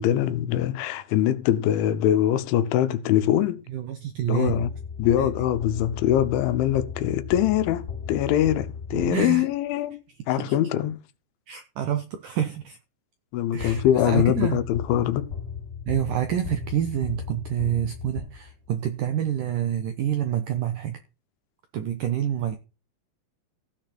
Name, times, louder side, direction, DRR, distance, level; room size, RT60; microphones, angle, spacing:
voice 1, 0.0-3.6 4.3-4.7 5.0-10.0 10.3-11.0 13.3-15.3, left 11 dB, 90° left, 3.4 m, -23 dB
voice 2, 3.7-4.7 5.2-5.3 8.9-9.5 10.4-10.6 11.5-12.8 13.5-14.6 15.9-21.0 21.7-22.6, right 10 dB, 80° right, 1.9 m, -27 dB
sound 1, 4.5-9.6 13.6-18.8, left 6 dB, 30° left, 4.1 m, -36 dB
16.0 x 6.5 x 4.2 m
omnidirectional pair, 5.2 m